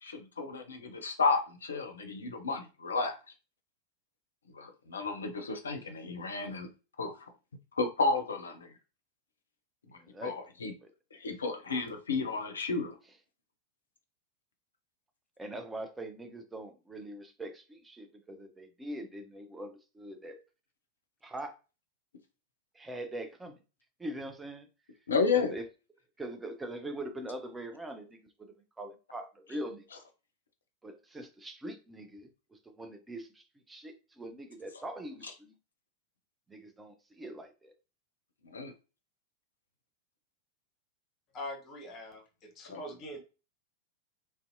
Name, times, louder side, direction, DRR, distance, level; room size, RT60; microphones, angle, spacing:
voice 1, 0.0-3.2 4.5-6.7 7.0-7.1 7.8-8.7 10.2-10.7 11.1-13.0 25.1-25.6 38.4-38.7 42.7-42.8, left 4 dB, 70° left, 0.5 m, -32 dB
voice 2, 10.0-10.3 10.8-10.9 15.4-20.4 21.2-21.6 22.7-23.6 24.0-24.7 25.3-25.7 26.2-28.2 28.8-29.9 30.8-35.5 36.5-37.7, right 1 dB, 10° right, 0.4 m, -42 dB
voice 3, 41.3-43.2, left 1 dB, 35° left, 0.8 m, -43 dB
2.5 x 2.1 x 2.5 m
figure-of-eight pair, 90°, 0 cm